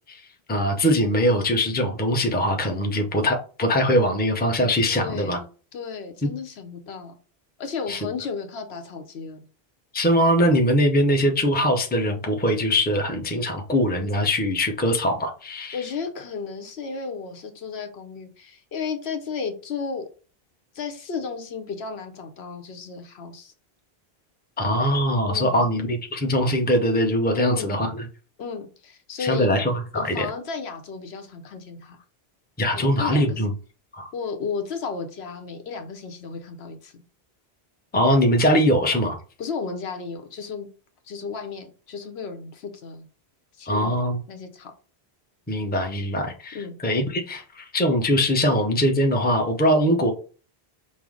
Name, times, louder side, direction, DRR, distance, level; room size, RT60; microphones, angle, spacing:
voice 1, 0.5-5.4 6.2-6.3 7.9-8.1 9.9-15.8 24.6-28.0 29.2-30.3 32.6-33.5 33.9-34.1 37.9-39.2 43.7-44.2 45.5-50.1, equal, 10° left, 3 dB, 0.6 m, -22 dB
voice 2, 4.9-5.5 5.7-7.1 7.6-9.4 15.7-20.1 20.7-23.5 25.3-25.6 27.3-27.8 28.4-29.5 29.9-32.0 32.7-33.4 34.1-36.9 39.4-40.7 41.1-43.1 43.6-44.0 44.3-44.7 46.5-46.8, left 5 dB, 80° left, 5 dB, 1.0 m, -33 dB
5.5 x 2.0 x 4.8 m, 0.38 s
omnidirectional pair, 1.1 m